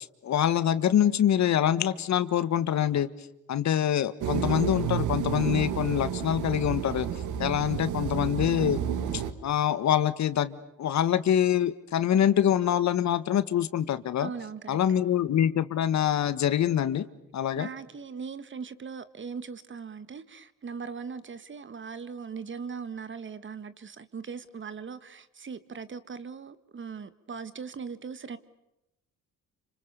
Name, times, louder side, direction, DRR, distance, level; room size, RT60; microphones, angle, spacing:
voice 1, 0.2-3.1 3.5-7.1 7.4-8.8 9.1-14.3 14.7-17.1 17.3-17.7, left 10 dB, 65° left, 1.5 m, -25 dB
sound 1, 4.2-9.3, right 9 dB, 80° right, 1.9 m, -30 dB
voice 2, 14.2-14.8 17.6-28.4, right 5 dB, 40° right, 1.7 m, -39 dB
29.0 x 26.0 x 6.9 m
cardioid pair, 90°, 30 cm